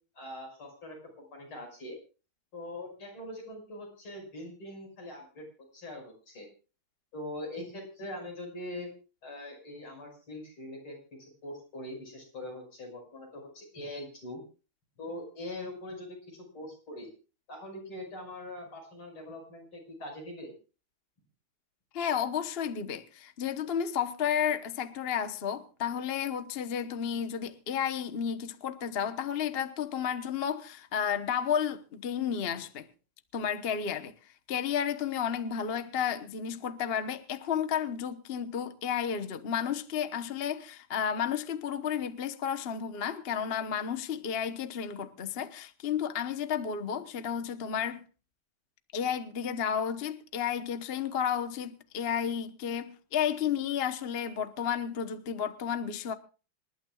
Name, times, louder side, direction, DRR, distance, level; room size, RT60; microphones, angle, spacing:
voice 1, 0.1-2.0 2.5-5.5 5.7-6.5 7.1-8.9 9.2-14.4 15.0-17.1 17.5-20.5, left 1 dB, 75° left, 6.6 m, -42 dB
voice 2, 21.9-32.9 33.3-48.0 48.9-56.1, left 8 dB, 40° left, 0.9 m, -32 dB
27.0 x 12.0 x 2.4 m
omnidirectional pair, 2.3 m